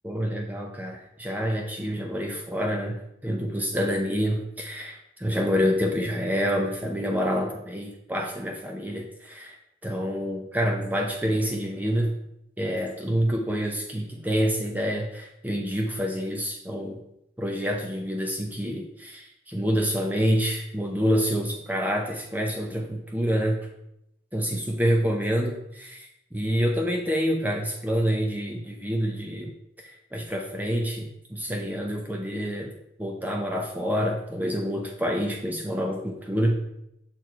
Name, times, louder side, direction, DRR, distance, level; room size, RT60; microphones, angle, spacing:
voice 1, 0.0-9.6 9.8-12.1 12.6-17.0 17.4-23.7 24.3-29.5 29.8-32.7 33.0-36.6, equal, 10° right, 1 dB, 0.6 m, -27 dB
6.4 x 4.2 x 4.4 m, 0.80 s
head